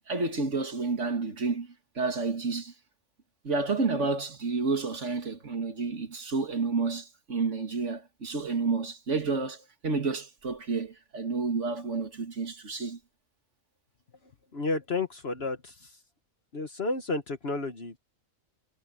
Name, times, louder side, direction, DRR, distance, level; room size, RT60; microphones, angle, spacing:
voice 1, 0.1-2.7 3.4-13.0, right 4 dB, 60° right, 2.5 m, -30 dB
voice 2, 14.5-16.0 16.5-18.0, left 3 dB, 50° left, 1.5 m, -32 dB
omnidirectional pair, 1.4 m